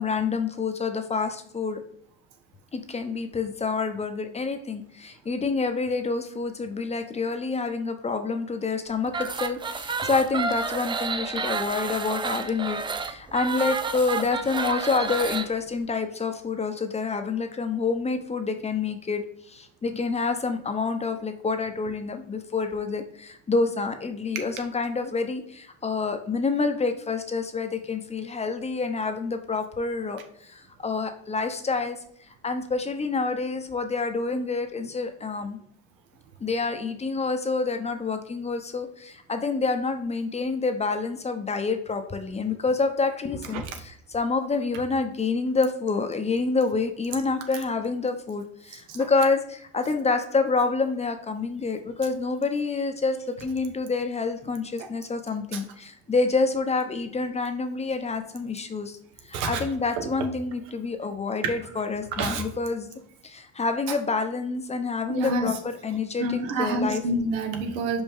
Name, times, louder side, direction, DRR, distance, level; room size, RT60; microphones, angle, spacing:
voice 1, 0.0-1.8 2.7-32.0 32.4-35.6 36.4-59.0 59.2-62.9 63.2-67.0, left 4 dB, 20° left, 7 dB, 0.8 m, -28 dB
sound 1, 9.1-15.5, right 4 dB, 15° right, 0.3 m, -30 dB
voice 2, 59.3-59.6 62.2-62.4 65.1-65.6 66.2-68.0, right 2 dB, 85° right, 5 dB, 1.3 m, -27 dB
5.2 x 5.1 x 3.6 m, 0.69 s
cardioid pair, 115°, 31 cm